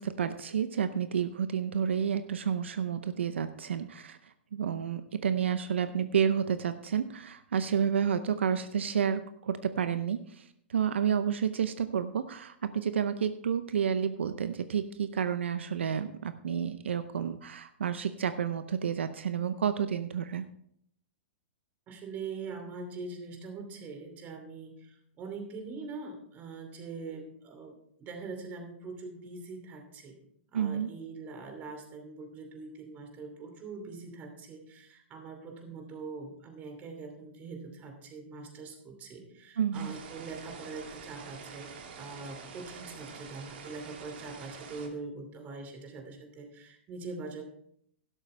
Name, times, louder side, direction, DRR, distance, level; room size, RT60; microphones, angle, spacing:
voice 1, 0.0-4.2 4.5-20.5 30.5-31.0 39.6-40.0, right 8 dB, 85° right, 11 dB, 0.7 m, -30 dB
voice 2, 21.9-30.2 30.5-41.7 42.0-47.4, right 4 dB, 25° right, 4 dB, 2.8 m, -43 dB
sound 1, 39.7-44.9, right 5 dB, 60° right, 2.3 m, -46 dB
12.0 x 12.0 x 3.4 m, 0.69 s
hypercardioid pair, 140°, 6 cm